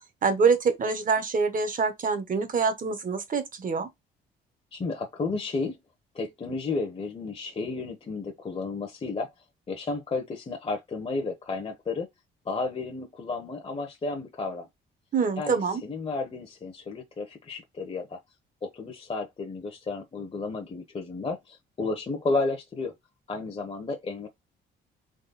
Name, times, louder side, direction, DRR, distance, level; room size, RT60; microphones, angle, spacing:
voice 1, 0.2-3.9 15.1-15.8, right 5 dB, 45° right, 1.3 m, -25 dB
voice 2, 4.7-5.8 6.1-9.3 9.7-12.1 12.4-14.7 15.4-18.2 18.6-22.9 23.3-24.3, left 3 dB, 30° left, 1.0 m, -32 dB
4.0 x 3.0 x 4.1 m
cardioid pair, 90°, 20 cm